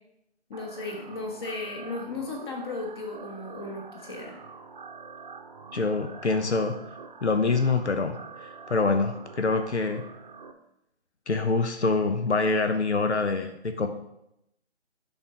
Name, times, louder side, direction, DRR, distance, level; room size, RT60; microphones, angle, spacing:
voice 1, 0.5-4.4, left 3 dB, 20° left, 2 dB, 1.2 m, -35 dB
sound 1, 0.5-10.5, right 5 dB, 45° right, 0.8 m, -45 dB
voice 2, 5.7-6.7 7.2-8.2 8.4-10.0 11.3-13.9, left 3 dB, 80° left, 7 dB, 1.0 m, -25 dB
10.5 x 4.5 x 5.2 m, 0.81 s
figure-of-eight pair, 145°, 34 cm